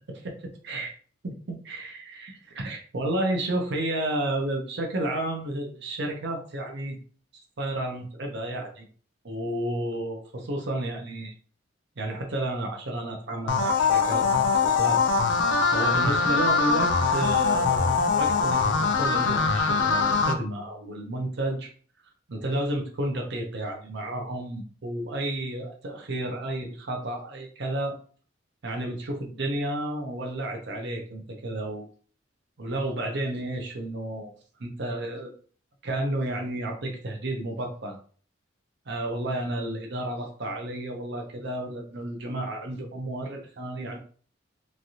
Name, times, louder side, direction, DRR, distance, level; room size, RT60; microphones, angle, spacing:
voice 1, 0.1-0.9 1.2-7.0 7.3-8.8 9.2-11.3 12.0-15.0 15.7-21.7 22.3-27.9 28.6-31.9 32.6-34.3 34.6-35.3 35.8-38.0 38.9-44.0, right 1 dB, 60° right, 2 dB, 0.7 m, -31 dB
sound 1, 13.5-20.3, left 4 dB, 65° left, 0.4 m, -23 dB
3.2 x 2.5 x 2.7 m, 0.43 s
head